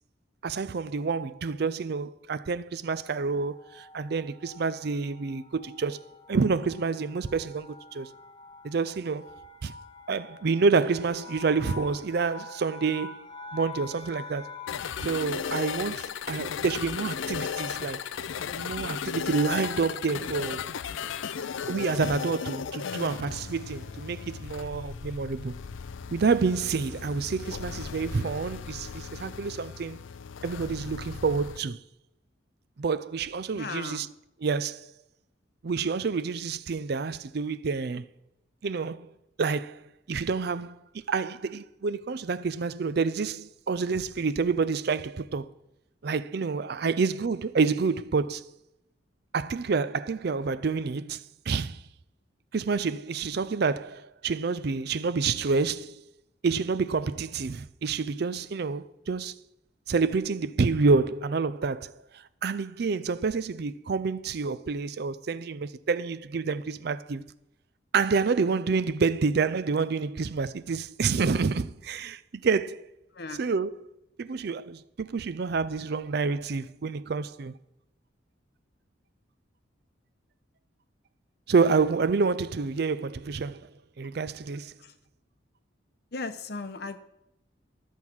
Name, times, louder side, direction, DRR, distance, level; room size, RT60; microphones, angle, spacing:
voice 1, 0.4-6.0 6.3-8.1 8.6-9.3 9.6-9.7 10.1-13.2 13.5-14.5 15.0-18.0 18.6-20.7 21.7-25.6 26.1-30.0 30.4-31.8 32.8-34.1 34.4-34.9 35.6-38.1 38.6-39.1 39.4-45.5 46.0-48.5 49.3-51.8 52.5-56.0 56.4-59.4 59.9-67.3 67.9-72.9 73.4-73.7 74.2-77.5 81.5-83.7 84.0-84.7, right 4 dB, 55° right, 0.4 m, -28 dB
sound 1, 2.9-15.0, left 5 dB, 25° left, 0.7 m, -46 dB
sound 2, 14.7-31.6, left 7 dB, 75° left, 0.4 m, -36 dB
voice 2, 33.5-34.1 46.8-47.0 73.1-73.4 84.8-85.0 86.1-87.0, left 3 dB, 55° left, 0.8 m, -37 dB
13.0 x 7.2 x 6.0 m
head